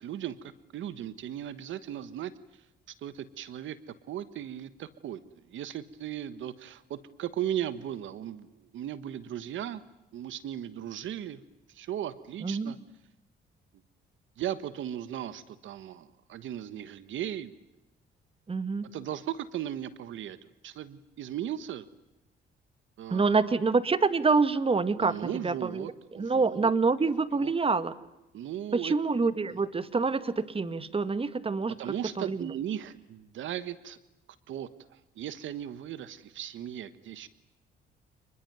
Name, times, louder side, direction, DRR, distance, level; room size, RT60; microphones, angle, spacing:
voice 1, 0.0-2.6 3.0-3.8 4.1-5.2 5.5-9.8 10.1-11.4 11.7-12.8 14.4-17.5 18.8-20.4 20.6-21.8 23.0-23.5 25.0-25.9 26.1-26.7 27.4-27.5 28.3-28.9 29.5-29.6 31.7-34.0 34.5-37.3, right 11 dB, 75° right, 14 dB, 1.4 m, -37 dB
voice 2, 12.4-12.7 18.5-18.9 23.1-25.2 25.4-25.9 26.2-27.9 28.7-31.7 32.2-32.5, right 4 dB, 30° right, 13 dB, 1.9 m, -26 dB
29.0 x 21.5 x 9.2 m, 0.92 s
cardioid pair, 90°, 20 cm